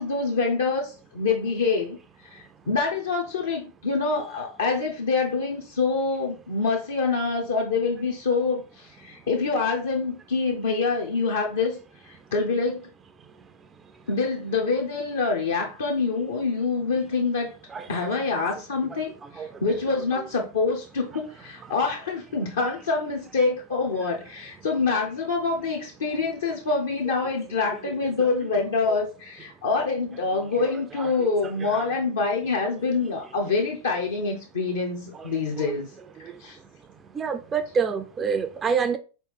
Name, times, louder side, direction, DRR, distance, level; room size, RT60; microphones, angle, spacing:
voice 1, 0.0-2.0 2.3-11.8 12.0-12.9 14.1-17.6 17.9-35.9 36.2-36.6, left 4 dB, 65° left, 0.6 m, -26 dB
voice 2, 19.9-20.3 30.6-31.1 31.6-31.9 35.1-35.3 37.1-39.0, right 6 dB, 20° right, 0.3 m, -28 dB
4.0 x 3.0 x 3.4 m
figure-of-eight pair, 90°, 0 cm